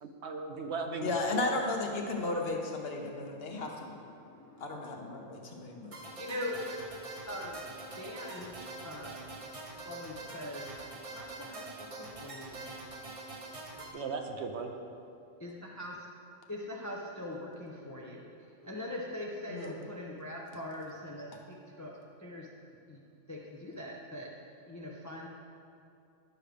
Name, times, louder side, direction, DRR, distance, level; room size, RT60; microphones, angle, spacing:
voice 1, 0.0-1.7 13.9-14.7, right 4 dB, 65° right, 4 dB, 0.8 m, -37 dB
voice 2, 1.0-3.9 4.6-5.9 19.5-19.7, left 2 dB, 55° left, 2 dB, 1.0 m, -34 dB
voice 3, 3.5-5.9 6.2-6.6 7.0-8.5 8.8-9.2 9.8-10.8 11.1-12.7 15.4-16.1 16.5-21.9 22.2-22.5 22.9-23.0 23.3-24.3 24.7-25.3, left 1 dB, 20° left, -2 dB, 0.4 m, -42 dB
sound 1, 5.9-13.9, right 2 dB, 35° right, 0.7 m, -44 dB
11.0 x 6.2 x 3.3 m, 2.5 s
omnidirectional pair, 1.3 m